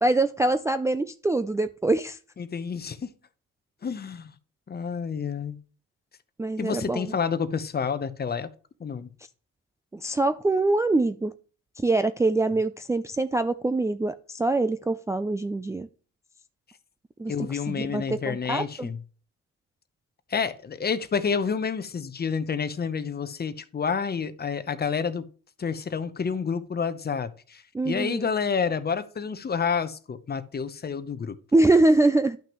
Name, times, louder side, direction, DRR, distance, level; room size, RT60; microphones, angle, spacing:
voice 1, 0.0-2.2 6.4-7.0 9.9-11.3 11.8-15.9 17.2-17.3 17.7-18.9 27.7-28.3 31.5-32.4, right 2 dB, 10° right, 0.4 m, -24 dB
voice 2, 2.4-3.1 3.8-4.3 4.7-5.6 6.6-8.5 8.8-9.1 17.3-19.0 20.3-25.3 25.6-31.4, left 6 dB, 30° left, 0.8 m, -29 dB
11.5 x 5.9 x 3.0 m
cardioid pair, 90°, 30 cm